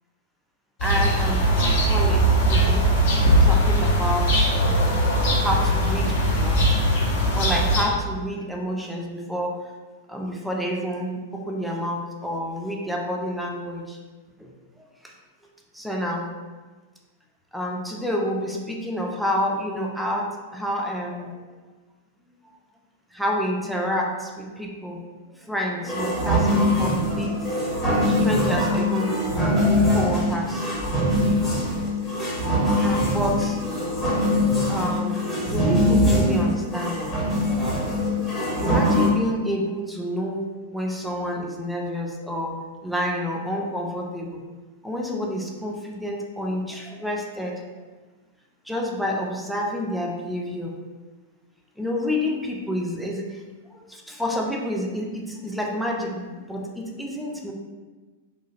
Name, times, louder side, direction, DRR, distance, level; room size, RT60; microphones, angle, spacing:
sound 1, 0.8-7.8, right 1 dB, 55° left, 0.6 m, -20 dB
voice 1, 0.8-2.8 3.4-5.1 5.4-6.7 7.3-9.5 10.1-14.0 14.4-14.5 15.0-15.1 15.7-16.3 17.5-21.4 23.1-25.0 25.4-27.3 28.1-30.6 32.8-33.6 34.7-37.3 38.6-40.5 40.7-44.4 44.8-47.6 48.7-50.8 51.8-53.4 53.7-57.5, equal, ahead, -1 dB, 0.4 m, -29 dB
sound 2, 25.8-39.1, left 1 dB, 15° left, 0.9 m, -22 dB
3.0 x 2.3 x 2.4 m, 1.3 s
figure-of-eight pair, 95°, 0 cm